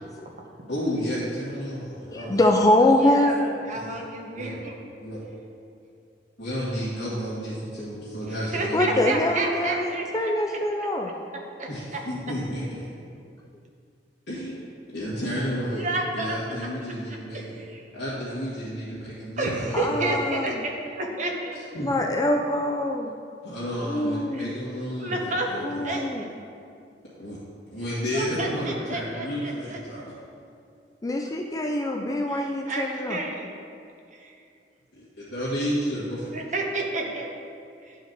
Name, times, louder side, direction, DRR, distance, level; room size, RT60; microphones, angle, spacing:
voice 1, 0.7-2.3 3.7-3.9 4.3-4.6 5.0-5.2 6.4-9.2 11.7-12.9 14.3-14.6 14.9-15.8 16.1-17.6 17.9-20.0 21.7-22.0 23.4-26.0 27.2-27.4 27.7-30.1 34.9-36.3, equal, 65° left, -12 dB, 2.0 m, -31 dB
voice 2, 2.1-3.4 8.7-11.1 19.7-20.6 21.8-23.1 23.8-24.5 25.6-26.2 31.0-33.2, left 1 dB, 20° left, 2 dB, 0.4 m, -24 dB
voice 3, 3.0-4.8 8.2-10.9 11.6-12.0 15.7-16.4 17.3-17.4 19.4-21.6 24.3-24.4 25.0-25.5 25.8-26.3 28.1-30.2 32.3-33.6 34.2-34.3 36.3-37.3 37.9-38.0, right 2 dB, 45° right, 0 dB, 1.2 m, -31 dB
11.5 x 5.0 x 4.0 m, 2.4 s
head